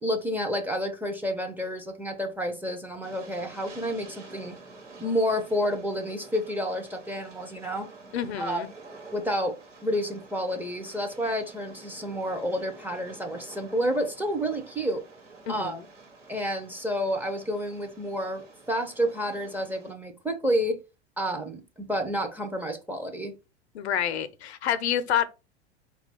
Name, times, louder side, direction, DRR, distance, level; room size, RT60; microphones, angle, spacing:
voice 1, 0.0-4.6 5.0-7.9 8.4-8.6 9.1-9.5 9.8-15.0 15.5-15.8 16.3-20.8 21.2-23.3, equal, 5° right, 0.5 m, -29 dB
Train, 3.0-19.9, right 3 dB, 90° right, 1.2 m, -49 dB
voice 2, 8.1-8.7 15.5-15.9 23.7-25.3, left 9 dB, 65° left, 0.6 m, -28 dB
4.4 x 2.3 x 4.0 m
figure-of-eight pair, 90°, 35 cm